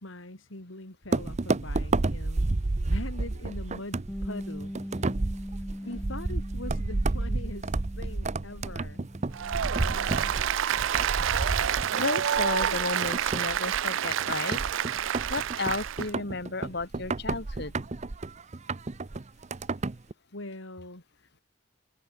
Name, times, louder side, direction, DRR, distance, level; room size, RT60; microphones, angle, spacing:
voice 1, 0.0-2.5 2.9-4.7 5.8-9.1 20.3-21.4, left 1 dB, 80° left, 3.8 m, -42 dB
sound 1, 1.1-20.1, right 2 dB, 35° right, 0.6 m, -31 dB
Bass guitar, 4.1-10.3, equal, 5° left, 0.8 m, -41 dB
Applause, 9.3-16.1, right 9 dB, 75° right, 0.4 m, -28 dB
voice 2, 11.9-14.6 15.3-17.7, left 3 dB, 60° left, 3.0 m, -33 dB
head